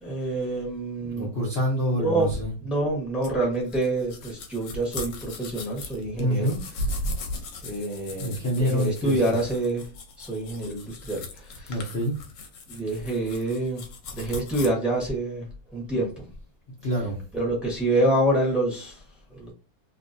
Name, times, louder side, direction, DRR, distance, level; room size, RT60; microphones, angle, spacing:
voice 1, 0.0-1.3 2.0-6.5 7.6-11.9 12.7-13.8 14.1-16.3 17.3-19.5, right 1 dB, ahead, 0.6 m, -27 dB
voice 2, 1.1-2.5 6.2-6.6 8.2-9.2 11.7-12.2 16.8-17.2, equal, 85° left, 0.5 m, -26 dB
sound 1, 3.2-14.7, left 1 dB, 70° left, 1.2 m, -37 dB
3.2 x 2.8 x 2.6 m
omnidirectional pair, 2.4 m